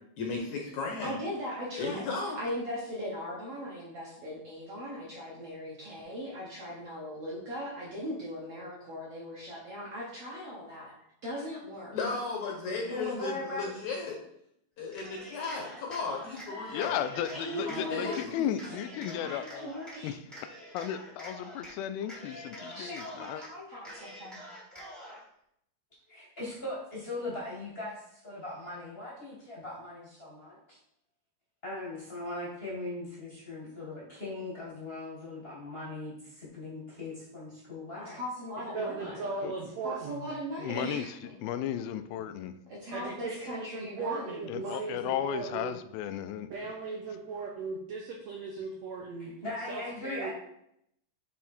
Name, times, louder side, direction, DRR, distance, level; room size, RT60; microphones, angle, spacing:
voice 1, 0.2-1.1 1.8-2.4 11.9-14.2 14.8-17.0 17.6-18.3, left 4 dB, 70° left, 0 dB, 1.9 m, -35 dB
voice 2, 1.0-2.0 2.4-10.9 11.2-12.0 15.4-15.5 15.8-16.0 16.5-16.9 17.1-18.5 18.8-20.1 22.7-24.4 38.0-39.2 39.8-41.1 42.7-44.6, equal, 60° right, -5 dB, 1.7 m, -39 dB
voice 3, 12.9-13.7 26.1-30.8 31.6-38.2 39.0-39.5 49.2-50.3, left 2 dB, 35° left, -6 dB, 1.0 m, -39 dB
Cheering, 14.8-16.5 16.8-18.2 18.6-20.0 20.3-21.7 22.0-23.5 23.8-25.2, equal, ahead, 0.7 m, -46 dB
voice 4, 16.7-19.7 20.0-20.2 20.7-23.4 39.4-39.5 40.6-42.6 44.5-46.5, left 10 dB, 85° left, 10 dB, 2.4 m, -35 dB
voice 5, 38.7-40.2 42.9-45.7 46.5-49.3 49.7-50.3, right 4 dB, 85° right, 0 dB, 1.5 m, -37 dB
9.3 x 3.6 x 4.4 m, 0.74 s
omnidirectional pair, 4.3 m